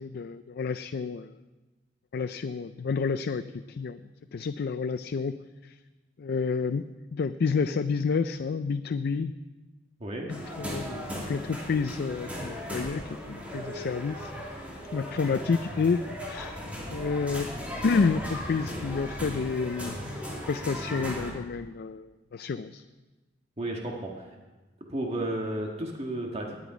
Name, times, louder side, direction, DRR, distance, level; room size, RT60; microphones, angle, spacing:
voice 1, 0.0-1.3 2.1-4.0 4.3-5.3 5.6-5.8 6.2-6.8 7.1-9.3 10.3-14.3 14.9-16.0 16.3-16.6 16.9-17.5 17.8-20.0 20.3-22.8, left 5 dB, 55° left, 11 dB, 0.4 m, -29 dB
sound 1, 10.3-21.3, equal, 10° right, 2.8 m, -37 dB
voice 2, 23.6-24.3 24.9-26.6, right 1 dB, 35° right, 0 dB, 1.6 m, -33 dB
18.5 x 10.0 x 5.0 m, 1.2 s
head